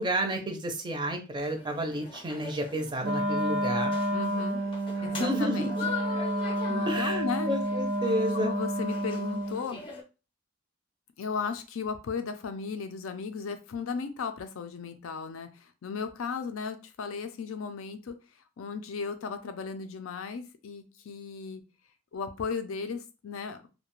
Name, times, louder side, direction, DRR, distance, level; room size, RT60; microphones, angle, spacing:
voice 1, 0.0-3.9 5.1-5.7 6.9-8.5, right 1 dB, 25° right, 4 dB, 0.4 m, -31 dB
sound 1, 1.4-10.0, left 4 dB, 25° left, 0.6 m, -42 dB
Wind instrument woodwind instrument, 3.0-9.6, right 1 dB, 90° right, 0.7 m, -30 dB
voice 2, 4.1-4.6 5.0-5.7 6.7-7.5 8.3-9.8 11.2-18.2 18.6-21.6 22.1-23.6, left 5 dB, 90° left, 9 dB, 0.4 m, -35 dB
2.4 x 2.1 x 2.9 m, 0.31 s
head